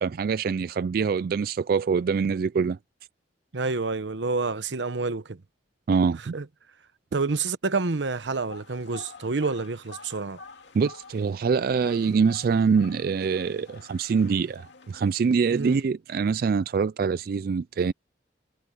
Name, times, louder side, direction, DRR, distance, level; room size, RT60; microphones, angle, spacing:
voice 1, 0.0-2.8 5.9-6.4 10.7-17.9, right 5 dB, 55° right, 0.3 m, -24 dB
voice 2, 3.5-5.4 6.3-6.5 7.1-10.4 15.5-15.8, right 3 dB, 85° right, 1.0 m, -28 dB
sound 1, 8.2-15.8, left 4 dB, 85° left, 2.3 m, -49 dB
head